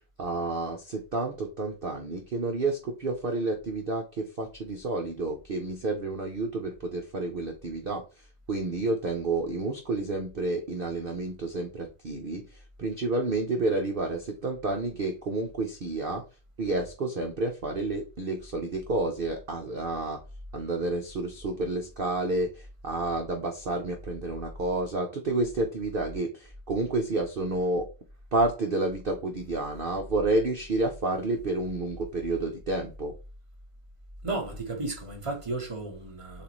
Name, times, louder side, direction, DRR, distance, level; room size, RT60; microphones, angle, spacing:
voice 1, 0.2-8.0 8.5-12.4 12.8-16.2 16.6-20.2 20.5-22.5 22.8-27.8 28.3-33.1, right 2 dB, 75° right, 0.5 m, -30 dB
voice 2, 34.2-36.4, right 2 dB, 20° right, 1.0 m, -34 dB
6.9 x 2.5 x 3.0 m
omnidirectional pair, 1.9 m